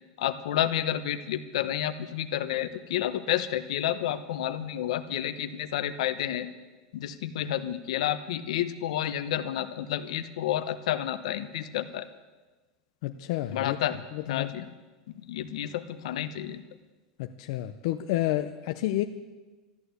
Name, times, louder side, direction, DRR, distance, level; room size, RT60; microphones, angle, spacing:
voice 1, 0.2-6.5 6.9-12.1 13.5-14.0 14.3-14.7 15.1-16.6, left 11 dB, 75° left, 11 dB, 1.0 m, -30 dB
voice 2, 13.0-13.8 14.1-14.6 17.2-19.0, left 14 dB, 55° left, 7 dB, 0.6 m, -30 dB
13.5 x 12.0 x 8.1 m, 1.2 s
supercardioid pair, 180°, 3 cm